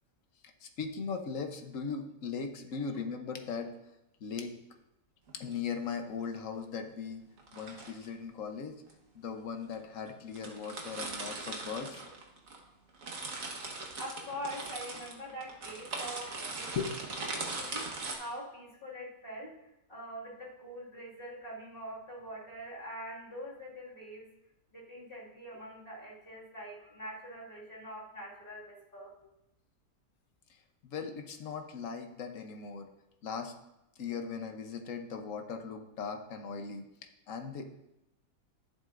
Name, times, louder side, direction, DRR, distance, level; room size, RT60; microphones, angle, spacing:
voice 1, 0.6-3.7 4.2-4.6 5.3-7.2 7.5-8.7 9.1-12.0 16.7-16.9 30.8-32.9 33.2-33.5 34.0-36.8 37.3-37.6, left 5 dB, 55° left, 5 dB, 1.2 m, -38 dB
sound 1, 5.3-5.5 7.4-8.1 8.9-9.0 9.7-9.8 10.1-10.2 10.3-12.6 12.9-18.1, right 3 dB, 55° right, 1.7 m, -40 dB
voice 2, 14.0-16.8 17.3-17.9 18.2-19.5 19.9-24.3 24.7-29.1, equal, 35° left, -6 dB, 2.4 m, -44 dB
12.5 x 7.7 x 2.6 m, 0.89 s
omnidirectional pair, 1.8 m